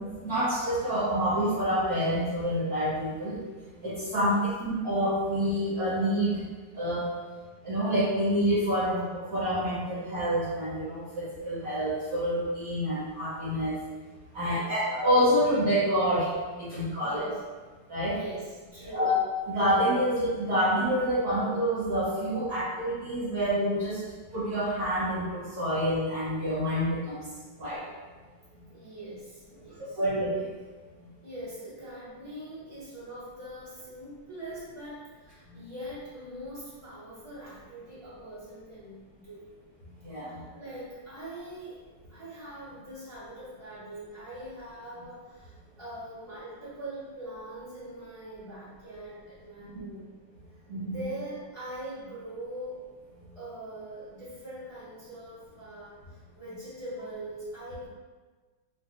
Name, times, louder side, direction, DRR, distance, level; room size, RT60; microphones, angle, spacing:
voice 1, 0.2-3.4 3.8-6.3 6.7-7.0 7.6-13.8 14.3-16.3 16.5-17.3 17.9-18.2 18.9-19.1 19.5-24.0 24.3-27.2 27.6-27.8 30.0-30.3 40.0-40.4 50.7-51.0, equal, 60° right, -10 dB, 0.9 m, -27 dB
voice 2, 4.1-4.5 14.4-14.8 17.0-17.4 18.0-19.1 28.7-30.0 31.2-39.4 40.3-41.8 42.1-50.1 50.8-52.8 53.3-57.9, right 1 dB, 20° left, -13 dB, 1.0 m, -42 dB
3.2 x 2.5 x 2.8 m, 1.4 s
omnidirectional pair, 2.4 m